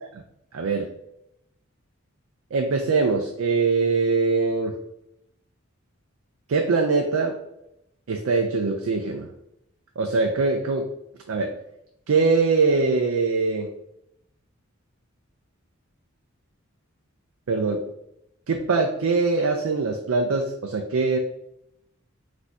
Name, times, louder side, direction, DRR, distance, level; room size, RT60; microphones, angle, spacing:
voice 1, 0.5-0.9 2.5-4.8 6.5-7.4 8.1-9.3 10.0-10.9 11.3-11.5 12.1-13.7 17.5-17.8 18.5-21.2, right 4 dB, 75° right, 4 dB, 0.4 m, -22 dB
4.1 x 2.7 x 4.6 m, 0.81 s
head